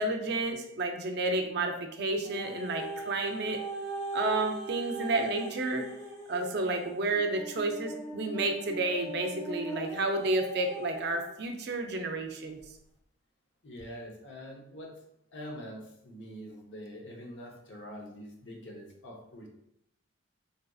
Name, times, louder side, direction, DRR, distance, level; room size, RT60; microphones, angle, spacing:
voice 1, 0.0-3.6 4.1-5.8 6.3-12.6, right 2 dB, 55° right, 4 dB, 0.4 m, -31 dB
sound 1, 2.2-11.3 12.0-12.1, right 2 dB, 25° left, 0.6 m, -40 dB
voice 2, 13.6-14.9 15.3-19.5, equal, 70° left, 0 dB, 0.7 m, -44 dB
4.0 x 2.5 x 2.3 m, 0.76 s
head